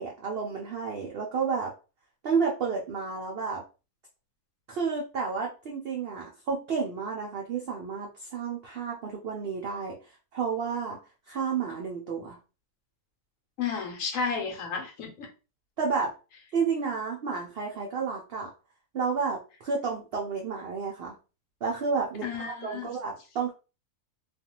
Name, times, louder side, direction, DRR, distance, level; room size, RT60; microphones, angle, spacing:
voice 1, 0.0-1.7 2.2-3.6 4.7-9.9 10.3-11.0 11.3-12.4 15.8-16.1 16.5-18.5 18.9-21.2 21.6-23.5, right 5 dB, 80° right, 0.5 m, -31 dB
voice 2, 13.6-15.3 22.2-23.0, left 5 dB, 65° left, 1.0 m, -32 dB
2.5 x 2.3 x 2.8 m
omnidirectional pair, 1.6 m